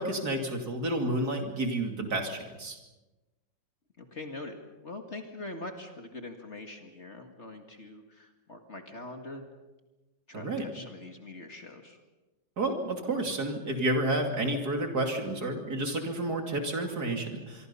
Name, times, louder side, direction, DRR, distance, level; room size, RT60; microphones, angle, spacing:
voice 1, 0.0-2.8 10.3-10.7 12.6-17.7, right 1 dB, 55° right, 3 dB, 3.3 m, -30 dB
voice 2, 4.0-4.6 4.8-9.4 10.3-12.0, left 2 dB, 35° left, 4 dB, 2.2 m, -43 dB
25.0 x 24.5 x 5.7 m, 1.1 s
omnidirectional pair, 2.1 m